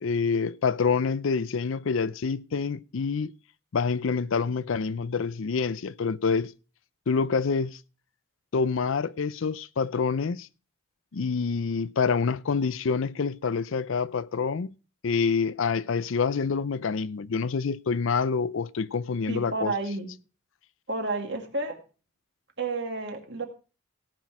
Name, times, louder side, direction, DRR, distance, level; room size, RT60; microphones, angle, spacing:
voice 1, 0.0-3.3 3.7-6.5 7.1-7.8 8.5-10.5 11.1-14.7 15.0-19.7, left 5 dB, 70° left, 0.5 m, -27 dB
voice 2, 19.3-20.1 20.9-21.8 22.6-23.5, right 3 dB, 55° right, 2.2 m, -31 dB
17.5 x 6.2 x 4.7 m
head